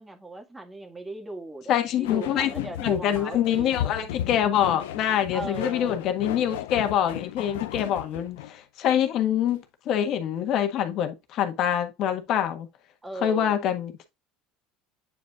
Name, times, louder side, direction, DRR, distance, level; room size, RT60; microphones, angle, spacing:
voice 1, 0.0-4.1 5.3-6.0 13.0-13.6, right 2 dB, 15° right, 1.8 m, -38 dB
voice 2, 1.7-12.7 13.2-14.1, left 10 dB, 55° left, 1.6 m, -25 dB
sound 1, 2.0-8.6, left 12 dB, 85° left, 0.6 m, -35 dB
9.0 x 5.3 x 2.4 m
supercardioid pair, 95°, 0 cm